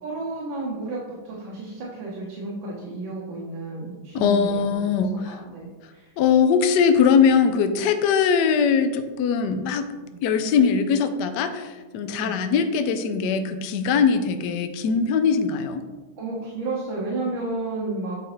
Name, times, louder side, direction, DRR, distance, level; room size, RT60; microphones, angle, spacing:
voice 1, 0.0-4.7 5.2-6.1 12.2-12.3 16.2-18.2, right 2 dB, 75° right, -4 dB, 1.8 m, -32 dB
voice 2, 4.1-5.4 6.2-9.9 10.2-15.8, left 6 dB, 75° left, 8 dB, 1.0 m, -21 dB
8.2 x 4.9 x 3.0 m, 1.3 s
omnidirectional pair, 2.2 m